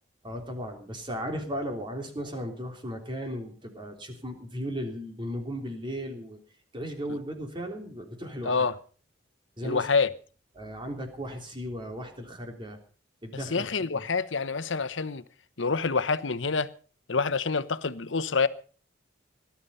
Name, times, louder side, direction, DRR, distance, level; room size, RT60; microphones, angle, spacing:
voice 1, 0.2-6.4 6.7-8.7 9.6-9.9 10.5-12.8 13.2-14.0, equal, 25° right, 3.3 m, -36 dB
voice 2, 9.6-10.1 13.5-15.2 15.6-16.7 17.1-18.5, left 4 dB, 85° left, 1.0 m, -27 dB
19.0 x 11.5 x 5.5 m
head